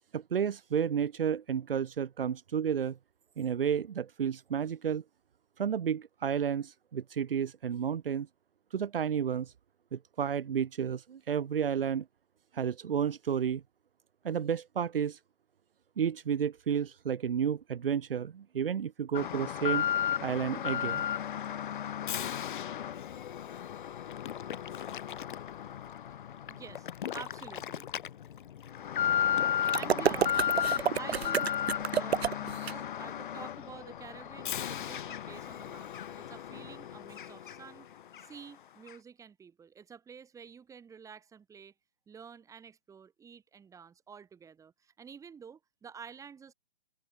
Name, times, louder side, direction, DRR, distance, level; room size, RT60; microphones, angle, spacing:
voice 1, 0.1-3.0 3.4-5.0 5.6-8.3 8.7-9.5 9.9-12.1 12.5-13.6 14.2-15.2 16.0-19.9 20.2-21.0, right 8 dB, 65° right, 2.0 m, -31 dB
Alarm, 19.1-37.8 38.1-38.2 38.9-39.0, left 10 dB, 50° left, 3.6 m, -34 dB
voice 2, 26.5-27.9 29.0-30.4 31.0-37.9 38.2-41.7 42.1-46.5, right 6 dB, 10° right, 5.3 m, -49 dB
sound 1, 29.7-32.7, right 8 dB, 90° right, 0.6 m, -29 dB
hypercardioid pair, 140°, 31 cm